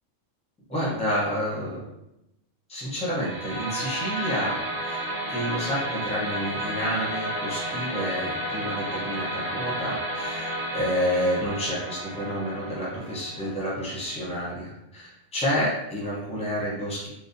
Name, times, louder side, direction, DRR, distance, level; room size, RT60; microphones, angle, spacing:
voice 1, 0.7-1.9 2.7-4.6 4.8-5.0 5.3-17.1, equal, 5° left, -6 dB, 0.5 m, -29 dB
sound 1, 3.1-14.2, right 1 dB, 50° right, 0.5 m, -32 dB
2.6 x 2.1 x 2.6 m, 0.88 s
omnidirectional pair, 1.3 m